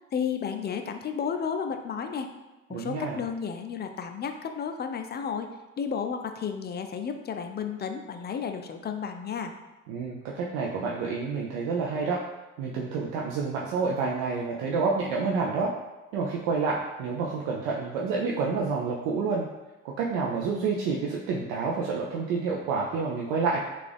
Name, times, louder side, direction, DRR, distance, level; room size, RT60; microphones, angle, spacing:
voice 1, 0.1-2.3 2.7-5.5 5.8-9.5, left 6 dB, 35° left, 6 dB, 0.4 m, -32 dB
voice 2, 2.7-3.2 9.9-12.2 12.6-15.7 16.1-19.5 19.8-23.6, right 4 dB, 85° right, -2 dB, 0.5 m, -28 dB
3.7 x 2.4 x 3.3 m, 1.1 s
supercardioid pair, 65°, 30 cm